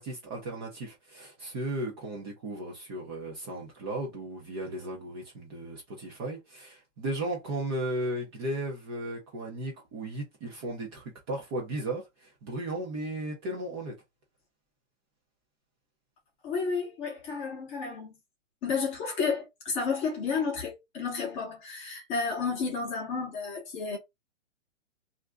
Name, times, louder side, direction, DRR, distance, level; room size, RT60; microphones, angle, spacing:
voice 1, 0.0-13.9, right 1 dB, 20° right, 0.6 m, -35 dB
voice 2, 16.4-18.2 18.6-24.0, left 5 dB, 15° left, 0.8 m, -31 dB
2.5 x 2.1 x 3.5 m
hypercardioid pair, 145°, 37 cm